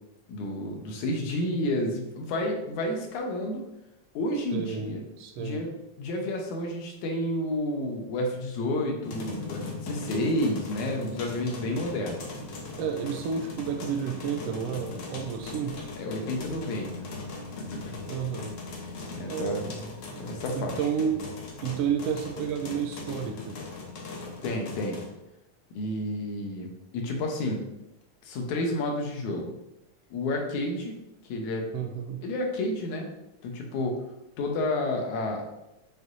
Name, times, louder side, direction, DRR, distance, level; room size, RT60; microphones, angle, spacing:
voice 1, 0.3-3.7 4.1-5.0 5.4-5.7 6.0-12.2 16.0-17.1 17.6-18.0 19.1-19.7 20.2-20.8 24.1-25.0 25.7-27.6 28.2-29.5 30.1-30.9 31.3-31.7 32.2-33.1 33.4-34.0 34.4-35.4, left 1 dB, 80° left, 2 dB, 2.4 m, -30 dB
voice 2, 4.5-5.6 12.8-15.7 18.1-18.6 19.3-19.8 20.5-21.3 21.6-23.6 31.7-32.2, right 7 dB, 85° right, 5 dB, 1.4 m, -31 dB
sound 1, 9.0-25.1, left 3 dB, 60° left, 1.2 m, -39 dB
6.8 x 6.3 x 2.7 m, 0.90 s
omnidirectional pair, 3.4 m